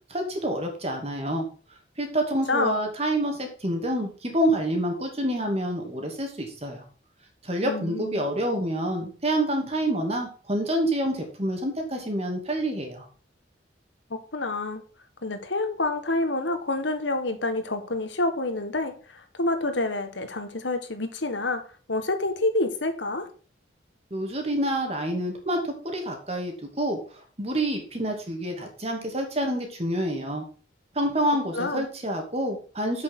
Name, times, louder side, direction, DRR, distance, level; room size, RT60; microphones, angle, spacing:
voice 1, 0.1-1.5 2.0-6.8 7.4-13.1 24.1-27.0 27.4-30.5 30.9-33.0, right 1 dB, 35° right, 3 dB, 2.5 m, -27 dB
voice 2, 7.6-8.2 14.3-14.8 15.2-21.6 21.9-23.3 31.5-31.8, left 2 dB, 75° left, 8 dB, 1.6 m, -28 dB
7.9 x 6.8 x 6.2 m, 0.39 s
head